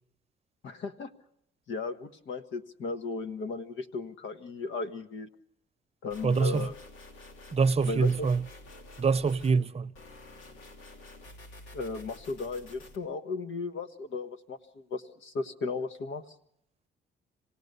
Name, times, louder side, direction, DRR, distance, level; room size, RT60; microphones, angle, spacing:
voice 1, 0.6-1.1 1.7-5.3 6.0-6.7 7.8-8.3 11.7-16.2, left 4 dB, 70° left, 1.5 m, -36 dB
sound 1, 6.1-9.6 9.9-12.9, left 2 dB, 90° left, 3.0 m, -49 dB
voice 2, 6.2-6.7 7.5-8.4 9.0-9.9, right 5 dB, 30° right, 0.8 m, -25 dB
26.5 x 18.0 x 6.8 m
cardioid pair, 90°, 20 cm